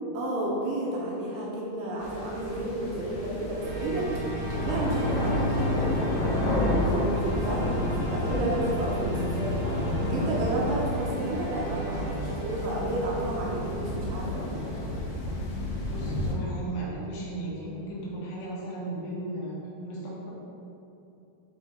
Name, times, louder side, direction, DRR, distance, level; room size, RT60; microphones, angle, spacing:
voice 1, 0.1-14.7, right 1 dB, 80° right, -4 dB, 2.7 m, -32 dB
sound 1, 2.0-16.3, left 1 dB, 90° left, 3.4 m, -31 dB
sound 2, 3.6-13.5, equal, 65° right, 3.0 m, -33 dB
voice 2, 15.9-19.6 19.8-20.3, right 2 dB, 75° left, -7 dB, 3.1 m, -36 dB
7.5 x 4.3 x 3.4 m, 2.8 s
omnidirectional pair, 5.3 m